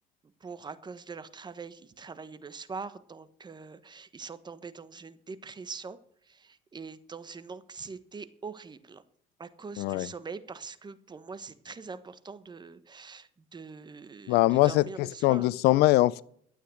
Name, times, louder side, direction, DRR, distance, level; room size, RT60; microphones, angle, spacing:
voice 1, 0.4-6.0 6.3-9.0 9.4-15.5, right 4 dB, 25° right, 1.2 m, -43 dB
voice 2, 9.8-10.1 14.3-14.8 15.2-16.2, left 18 dB, 85° left, 0.5 m, -22 dB
13.0 x 8.8 x 6.5 m
cardioid pair, 100°, 16 cm